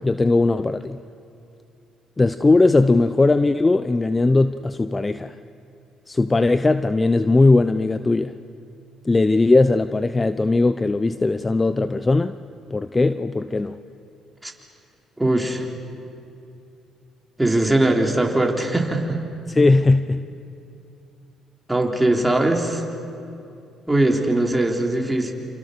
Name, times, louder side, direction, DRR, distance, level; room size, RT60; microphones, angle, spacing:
voice 1, 0.0-1.0 2.2-5.4 6.1-8.3 9.0-12.3 12.7-13.8 19.5-20.2, left 3 dB, 20° left, 12 dB, 0.7 m, -19 dB
voice 2, 15.2-15.7 17.4-19.2 21.7-22.8 23.9-25.3, right 1 dB, 10° right, 1 dB, 3.7 m, -20 dB
28.5 x 28.0 x 6.8 m, 2.7 s
cardioid pair, 85°, 0 cm